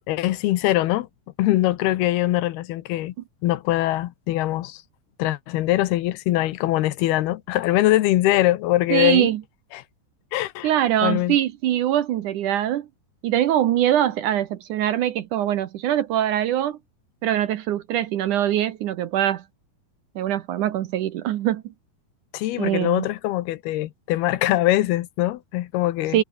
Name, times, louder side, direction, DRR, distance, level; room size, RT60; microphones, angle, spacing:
voice 1, 0.1-1.1 1.4-3.1 3.4-4.8 5.2-9.3 9.7-9.8 10.3-10.7 11.0-11.4 22.3-26.2, left 15 dB, 85° left, 3.0 m, -22 dB
voice 2, 8.9-9.4 10.6-12.9 13.2-16.8 17.2-19.4 20.2-21.6 22.6-23.1 26.1-26.2, right 11 dB, 70° right, 2.1 m, -23 dB
omnidirectional pair, 4.5 m